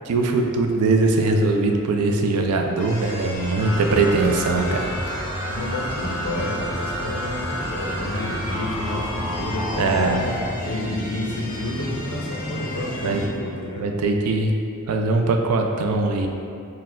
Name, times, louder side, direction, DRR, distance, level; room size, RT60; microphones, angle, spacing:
voice 1, 0.1-4.8 9.8-10.2 13.0-13.2 13.8-14.5 14.9-16.3, right 3 dB, 85° right, 3 dB, 0.4 m, -21 dB
sound 1, 2.8-13.3, left 1 dB, 40° left, 0.5 m, -34 dB
voice 2, 3.4-5.0 5.5-13.9, left 1 dB, 90° left, -4 dB, 0.6 m, -30 dB
sound 2, 3.6-10.5, equal, 40° right, 1.0 m, -30 dB
4.5 x 2.2 x 3.7 m, 2.5 s
head